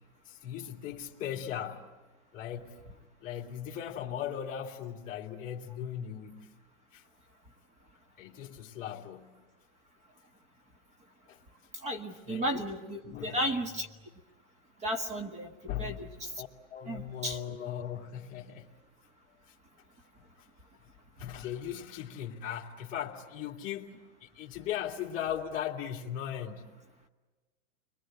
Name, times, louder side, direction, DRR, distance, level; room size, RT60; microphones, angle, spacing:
voice 1, 0.3-1.9 2.3-2.8 3.2-6.4 6.9-7.0 8.2-9.4 11.3-11.4 12.3-12.7 13.0-13.4 15.7-18.7 20.4-20.5 21.2-23.9 24.2-26.6, left 9 dB, 20° left, 2.4 m, -38 dB
voice 2, 11.8-13.9 14.8-15.5 15.8-16.3 16.9-17.4, equal, 20° right, 1.6 m, -34 dB
30.0 x 22.0 x 8.9 m
supercardioid pair, 160°, 37 cm